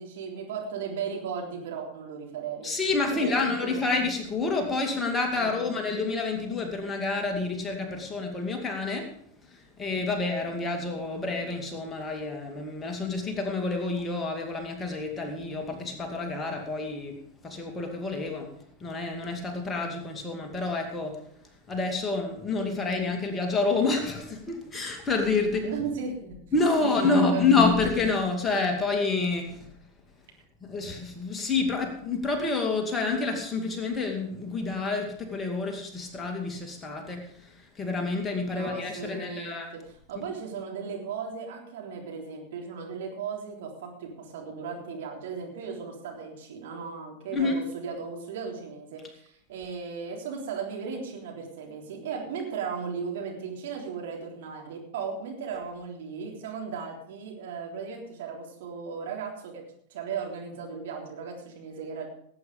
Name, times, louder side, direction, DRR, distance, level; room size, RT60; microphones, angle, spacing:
voice 1, 0.0-2.7 3.1-3.9 5.3-5.7 25.6-26.4 26.8-27.6 38.5-39.8 40.1-59.6 59.9-62.1, right 6 dB, 55° right, 0 dB, 3.5 m, -36 dB
voice 2, 2.6-9.1 9.5-17.2 17.4-18.5 18.8-21.2 21.7-25.7 26.5-29.7 30.6-39.7 47.3-47.6, left 3 dB, 15° left, 3 dB, 2.5 m, -28 dB
18.0 x 8.6 x 5.1 m, 0.69 s
figure-of-eight pair, 90°, 0 cm